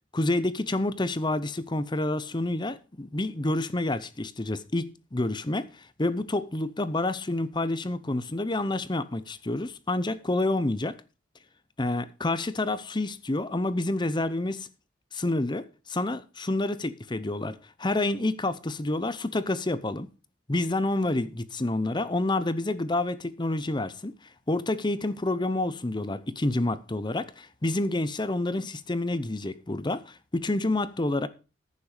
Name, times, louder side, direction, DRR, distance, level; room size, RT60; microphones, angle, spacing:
voice 1, 0.1-11.0 11.8-14.7 15.1-20.1 20.5-24.1 24.5-31.3, left 2 dB, 25° left, 0.7 m, -28 dB
14.5 x 6.9 x 5.1 m
head